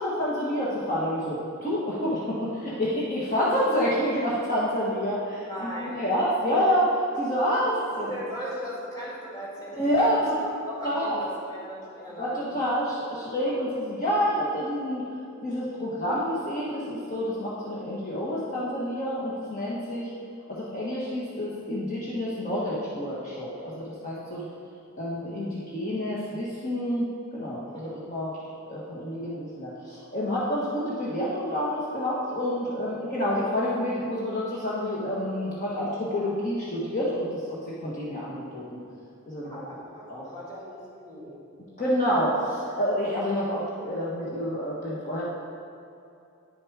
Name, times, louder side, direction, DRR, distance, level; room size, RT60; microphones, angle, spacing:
voice 1, 0.0-8.1 9.7-10.2 10.8-11.2 12.2-15.0 15.4-20.1 20.5-24.4 25.0-27.1 27.3-28.3 28.7-37.3 37.8-38.8 39.3-39.6 40.1-40.3 41.8-45.2, equal, 40° left, -8 dB, 1.5 m, -28 dB
voice 2, 5.4-6.0 7.9-12.6 27.6-28.0 39.4-41.4, equal, 20° left, -7 dB, 2.5 m, -38 dB
9.8 x 7.2 x 4.8 m, 2.6 s
head